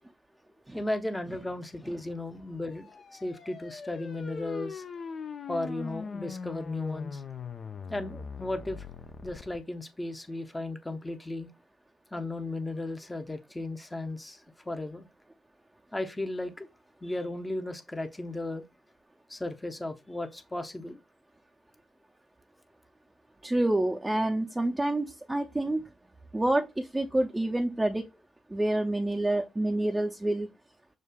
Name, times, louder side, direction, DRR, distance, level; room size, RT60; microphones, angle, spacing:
voice 1, 0.7-4.8 5.5-7.2 7.9-8.9 9.2-11.5 12.1-15.1 15.9-16.7 17.0-18.6 19.3-21.0, left 2 dB, 20° left, 0.8 m, -35 dB
sound 1, 2.7-9.6, left 5 dB, 50° left, 0.5 m, -41 dB
voice 2, 23.4-25.8 26.3-28.1 28.5-30.5, right 1 dB, 15° right, 0.5 m, -28 dB
6.3 x 2.3 x 2.3 m
hypercardioid pair, 40°, 0 cm